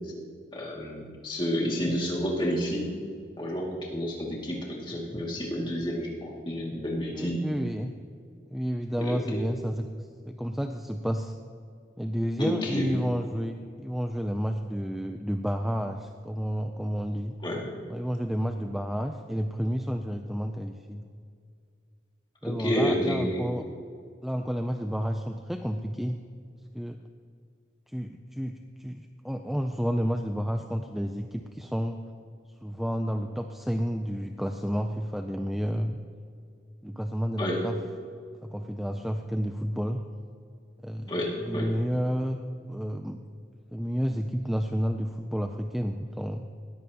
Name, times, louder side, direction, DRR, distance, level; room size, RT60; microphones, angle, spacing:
voice 1, 0.5-2.9 3.4-7.4 9.0-9.5 12.4-12.9 17.4-17.6 22.4-23.4 37.4-37.6 41.1-41.7, equal, 25° left, -3 dB, 2.2 m, -30 dB
voice 2, 7.1-7.9 8.5-11.3 12.0-17.4 17.9-21.1 22.4-23.6 24.2-26.2 26.7-27.0 27.9-32.0 32.6-36.0 36.8-37.8 38.4-40.1 40.8-42.4 42.7-43.2 43.7-46.4, equal, ahead, 5 dB, 0.4 m, -31 dB
19.5 x 14.0 x 2.9 m, 2.3 s
head